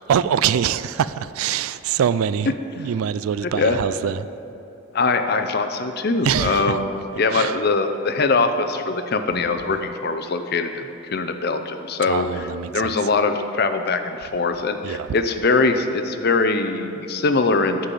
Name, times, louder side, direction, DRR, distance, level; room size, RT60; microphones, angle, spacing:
voice 1, 0.1-4.3 6.2-6.8 7.3-7.6 12.1-13.0 14.8-15.1, right 8 dB, 80° right, 0.3 m, -24 dB
voice 2, 3.4-3.8 4.9-12.3 12.7-17.9, left 3 dB, 45° left, 0.6 m, -22 dB
10.5 x 5.5 x 7.5 m
head